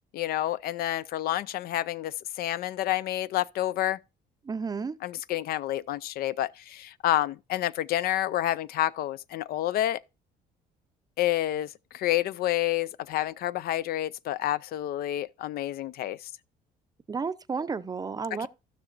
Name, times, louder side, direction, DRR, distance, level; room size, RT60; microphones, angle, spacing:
voice 1, 0.1-4.0 5.0-10.0 11.2-11.7 11.9-16.3 18.4-18.5, left 13 dB, 65° left, 0.4 m, -29 dB
voice 2, 4.4-4.9 17.1-18.5, right 5 dB, 20° right, 0.5 m, -32 dB
15.5 x 5.9 x 2.5 m
cardioid pair, 110°, 17 cm